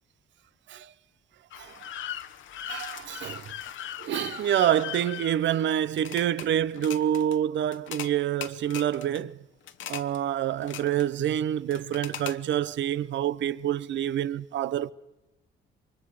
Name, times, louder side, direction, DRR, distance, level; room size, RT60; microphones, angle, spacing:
sound 1, 1.5-6.5 6.7-7.4 7.7-8.1 8.4-9.2 9.7-10.2 10.5-11.1 11.7-12.4, left 11 dB, 75° left, 1.2 m, -39 dB
voice 1, 2.7-3.5 4.0-9.4 9.9-14.9, right 11 dB, 65° right, 0.7 m, -27 dB
28.0 x 23.5 x 5.0 m
cardioid pair, 90°, 20 cm